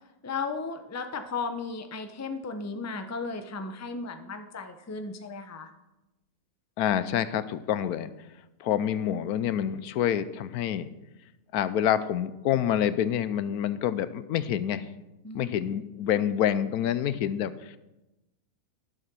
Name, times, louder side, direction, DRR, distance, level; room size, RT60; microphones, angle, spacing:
voice 1, 0.2-5.7 15.2-15.6, left 4 dB, 15° left, 7 dB, 0.5 m, -35 dB
voice 2, 6.8-8.1 8.6-10.9 11.5-14.8 15.3-17.8, left 10 dB, 80° left, 14 dB, 1.1 m, -27 dB
11.5 x 7.5 x 6.1 m, 0.99 s
omnidirectional pair, 1.6 m